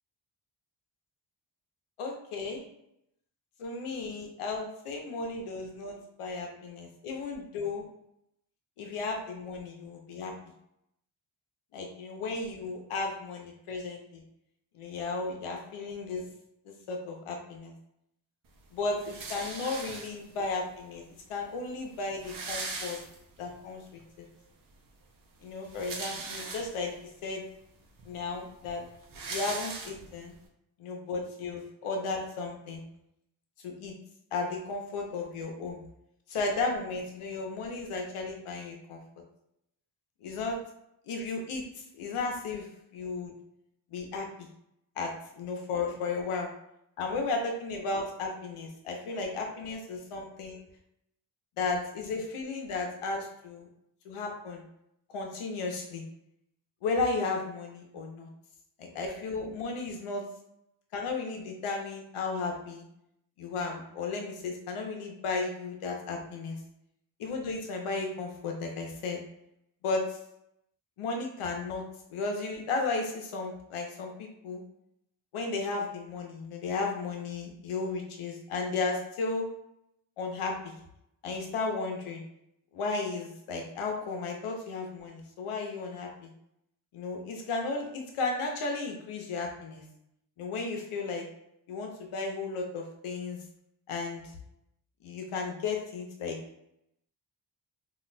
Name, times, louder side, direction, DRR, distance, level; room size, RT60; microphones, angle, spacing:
voice 1, 2.0-2.6 3.6-7.9 8.8-10.3 11.7-14.2 14.7-16.3 16.6-17.7 18.7-21.0 21.3-23.0 23.4-24.3 25.4-26.9 27.2-27.4 28.1-28.9 29.3-30.3 30.8-32.8 33.6-33.9 34.3-35.8 36.3-39.0 40.2-40.6 41.1-41.6 41.9-42.7 42.9-43.3 43.9-44.5 45.0-46.5 47.0-50.6 51.6-53.7 54.0-54.6 55.1-56.0 56.8-58.3 58.8-60.2 60.9-62.8 63.4-66.6 67.2-69.2 69.8-70.2 71.0-71.8 72.1-74.6 75.3-79.5 80.2-80.7 81.2-82.2 82.7-86.3 86.9-89.8 90.4-91.2 91.7-93.4 93.9-94.2 95.0-96.4, left 3 dB, 90° left, 1 dB, 0.8 m, -34 dB
sound 1, 19.0-20.4 21.3-21.4 21.6-21.7 21.9-23.5 24.0-24.1 25.5-27.0 27.6-27.7 28.0-30.3, right 3 dB, 45° right, 0.6 m, -39 dB
3.9 x 2.6 x 2.2 m, 0.78 s
cardioid pair, 110°, 49 cm